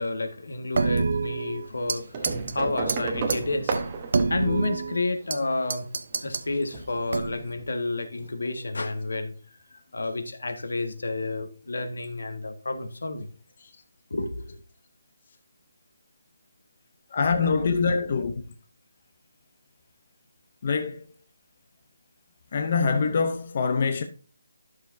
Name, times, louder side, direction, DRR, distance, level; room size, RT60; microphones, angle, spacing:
voice 1, 0.0-3.7 4.3-5.9 6.1-9.3 9.7-13.3 14.1-14.6, left 2 dB, 80° left, 1.6 m, -30 dB
sound 1, 0.7-2.5 2.9-3.0 3.3-3.4 3.7-5.4 5.7-6.5 7.1-7.5, right 4 dB, 45° right, 0.7 m, -27 dB
sound 2, 2.1-5.4 6.6-7.5 8.6-8.7 9.0-9.1, right 4 dB, 20° right, 0.9 m, -32 dB
voice 2, 17.1-18.4 20.6-21.0 22.5-24.0, left 5 dB, 30° left, 0.6 m, -24 dB
12.0 x 6.6 x 2.6 m
hypercardioid pair, 175°, 0 cm